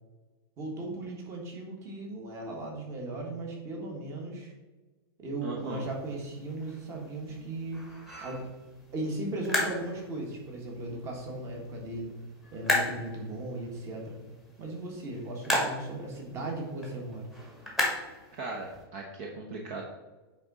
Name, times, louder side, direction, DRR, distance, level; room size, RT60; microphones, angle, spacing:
voice 1, 0.6-4.5 5.2-7.9 8.2-8.4 8.9-12.1 12.5-14.2 14.6-17.3, right 2 dB, 20° right, 0 dB, 1.5 m, -37 dB
voice 2, 5.4-5.8 18.4-19.8, right 3 dB, 40° right, 0 dB, 0.9 m, -38 dB
sound 1, 5.6-18.8, left 1 dB, ahead, 1.3 m, -36 dB
9.0 x 3.7 x 4.0 m, 1.2 s
supercardioid pair, 160°, 13 cm